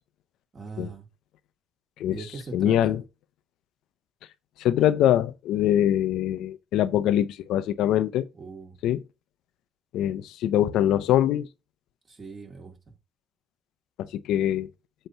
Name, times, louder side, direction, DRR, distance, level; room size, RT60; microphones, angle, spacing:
voice 1, 0.5-1.1 2.1-3.0 8.3-8.8 12.1-13.0, right 4 dB, 35° right, 2.0 m, -40 dB
voice 2, 2.5-3.0 4.6-8.2 8.8-9.0 9.9-11.5 14.0-14.7, left 11 dB, 90° left, 0.5 m, -23 dB
7.9 x 3.0 x 5.6 m
cardioid pair, 90°, 0 cm